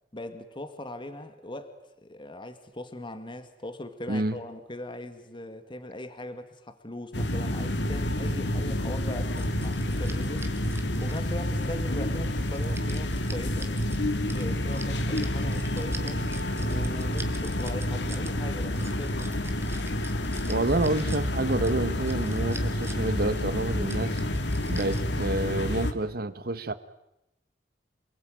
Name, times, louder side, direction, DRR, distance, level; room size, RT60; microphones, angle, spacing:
voice 1, 0.1-13.7 14.3-16.2 16.6-19.3, left 1 dB, 30° left, 2.2 m, -40 dB
voice 2, 4.1-4.4 20.5-24.2 24.7-26.7, right 2 dB, 60° right, 1.3 m, -28 dB
Venice at night, 7.1-25.9, left 1 dB, 75° left, 2.3 m, -29 dB
sound 1, 9.4-11.5 12.1-14.0 14.3-18.3 18.6-21.2 21.6-23.1 23.4-23.5 23.9-25.2, right 1 dB, 15° right, 2.4 m, -41 dB
28.5 x 21.0 x 9.2 m
head